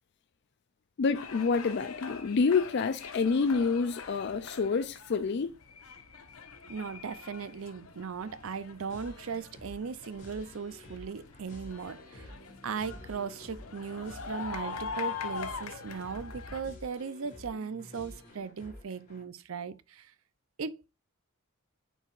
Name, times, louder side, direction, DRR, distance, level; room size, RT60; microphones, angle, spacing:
voice 1, 1.0-5.5, left 5 dB, 55° left, 0.4 m, -28 dB
sound 1, 1.1-16.6, left 5 dB, 85° left, 1.1 m, -43 dB
voice 2, 6.7-12.3 12.6-20.1 20.6-20.9, right 5 dB, 70° right, 0.6 m, -38 dB
sound 2, 8.9-19.2, left 1 dB, 35° left, 3.7 m, -50 dB
8.9 x 4.6 x 2.5 m
head